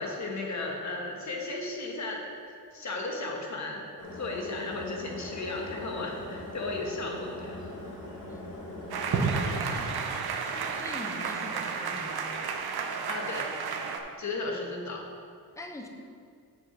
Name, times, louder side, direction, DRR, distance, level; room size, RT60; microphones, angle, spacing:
voice 1, 0.0-2.2 2.7-3.8 4.1-7.7 13.1-13.5 14.2-15.0, left 2 dB, 50° left, 0 dB, 1.4 m, -35 dB
sound 1, 4.0-9.6, left 2 dB, 85° left, 2.5 m, -41 dB
Fireworks, 5.5-10.8, right 4 dB, 65° right, 1.3 m, -36 dB
sound 2, 8.9-14.0, right 5 dB, 90° right, 0.9 m, -33 dB
voice 2, 9.0-12.4 15.6-15.9, left 1 dB, 10° left, 3 dB, 0.7 m, -44 dB
7.7 x 6.3 x 6.0 m, 2.2 s
wide cardioid pair, 170°, 37 cm